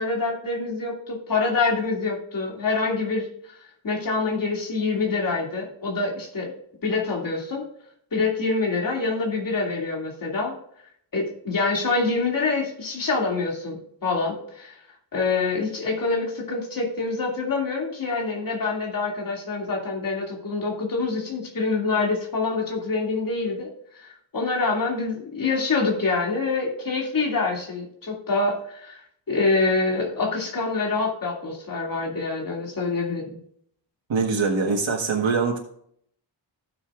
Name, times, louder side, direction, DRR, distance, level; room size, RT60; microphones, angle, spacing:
voice 1, 0.0-3.6 3.8-6.5 6.8-7.6 8.1-10.5 11.1-14.8 15.1-23.7 23.9-29.0 29.3-33.4, left 3 dB, 45° left, -1 dB, 2.6 m, -26 dB
voice 2, 34.1-35.6, right 4 dB, 75° right, -1 dB, 1.6 m, -23 dB
16.5 x 7.0 x 2.5 m, 0.67 s
wide cardioid pair, 165°, 45 cm